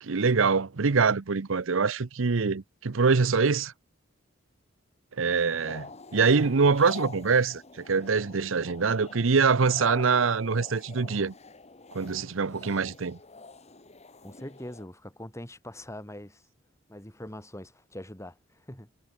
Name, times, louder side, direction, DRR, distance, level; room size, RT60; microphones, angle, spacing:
voice 1, 0.0-3.7 5.2-11.3 11.9-13.2, right 5 dB, 70° right, 0.7 m, -24 dB
sound 1, 5.4-14.9, left 3 dB, 35° left, 2.3 m, -46 dB
voice 2, 14.2-16.4 16.9-18.9, left 1 dB, 15° left, 7.4 m, -42 dB
head